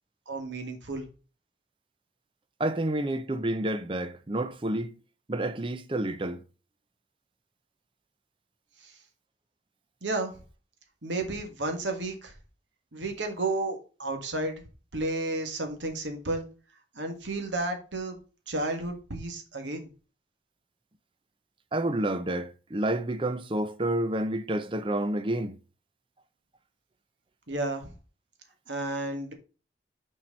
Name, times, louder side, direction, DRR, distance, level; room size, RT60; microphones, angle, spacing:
voice 1, 0.3-1.1 8.8-8.9 10.0-10.3 11.0-12.3 12.9-14.5 14.9-16.5 17.0-18.2 18.5-19.9 27.5-27.9 28.7-29.3, right 2 dB, 90° right, 1.7 m, -32 dB
voice 2, 2.6-5.0 5.3-6.4 21.7-25.6, right 1 dB, 30° right, 0.6 m, -29 dB
6.0 x 4.6 x 5.2 m
head